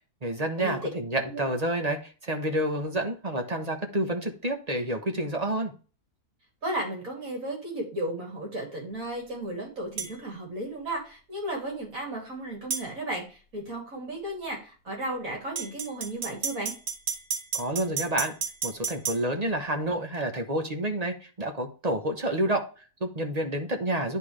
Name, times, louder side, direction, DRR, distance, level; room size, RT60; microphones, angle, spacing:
voice 1, 0.2-5.7 17.5-18.3 18.6-24.2, right 1 dB, 30° right, 4 dB, 1.0 m, -29 dB
voice 2, 6.6-16.7, right 1 dB, 65° right, -1 dB, 3.4 m, -34 dB
sound 1, 10.0-10.1 12.7-12.9 15.6-19.2, right 6 dB, 90° right, 2.2 m, -31 dB
10.5 x 3.9 x 3.2 m, 0.36 s
omnidirectional pair, 1.6 m